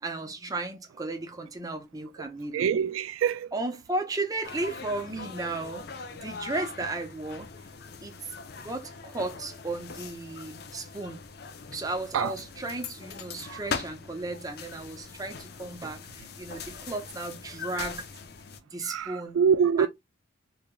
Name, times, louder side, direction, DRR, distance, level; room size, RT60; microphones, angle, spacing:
voice 1, 0.0-2.7 3.5-7.5 8.0-11.2 11.7-18.1 18.7-19.4 19.8-19.9, right 2 dB, 20° right, 0.7 m, -35 dB
voice 2, 2.5-3.5 12.1-12.3 13.4-13.6 18.8-19.9, right 7 dB, 90° right, 0.3 m, -25 dB
sound 1, 4.4-18.6, left 5 dB, 50° left, 0.5 m, -41 dB
3.9 x 3.0 x 2.2 m
head